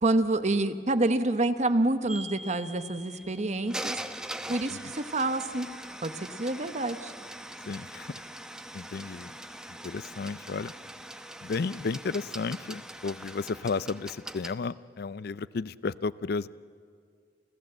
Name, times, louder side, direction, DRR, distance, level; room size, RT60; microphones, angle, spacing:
voice 1, 0.0-4.0 4.5-5.7 6.0-7.1, right 2 dB, 40° right, 10 dB, 1.0 m, -27 dB
sound 1, 2.1-14.5, right 1 dB, 5° right, 0.8 m, -42 dB
voice 2, 7.7-8.1 8.7-9.3 9.8-10.7 11.4-16.5, left 4 dB, 60° left, 18 dB, 0.5 m, -33 dB
29.0 x 15.5 x 7.8 m, 2.2 s
head